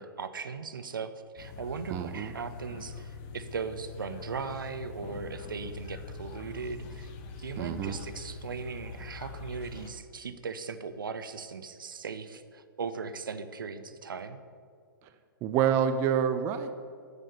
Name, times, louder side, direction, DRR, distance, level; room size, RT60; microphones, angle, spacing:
voice 1, 0.0-7.1 7.4-14.4, right 5 dB, 70° right, 11 dB, 0.6 m, -38 dB
sound 1, 1.4-9.9, left 4 dB, 35° left, 0.8 m, -44 dB
voice 2, 1.9-2.3 7.6-8.0 15.4-16.8, right 8 dB, 25° right, 8 dB, 0.4 m, -27 dB
8.9 x 4.9 x 6.8 m, 2.2 s
figure-of-eight pair, 115°, 12 cm